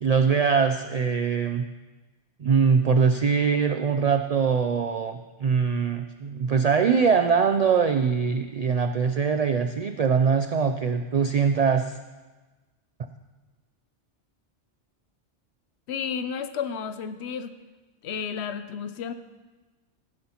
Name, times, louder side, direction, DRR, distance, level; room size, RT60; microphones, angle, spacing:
voice 1, 0.0-1.6 2.4-12.0, right 6 dB, 65° right, 7 dB, 0.4 m, -22 dB
voice 2, 15.9-17.5 18.0-19.1, left 7 dB, 70° left, 10 dB, 0.9 m, -32 dB
16.0 x 9.5 x 2.9 m, 1.2 s
omnidirectional pair, 1.2 m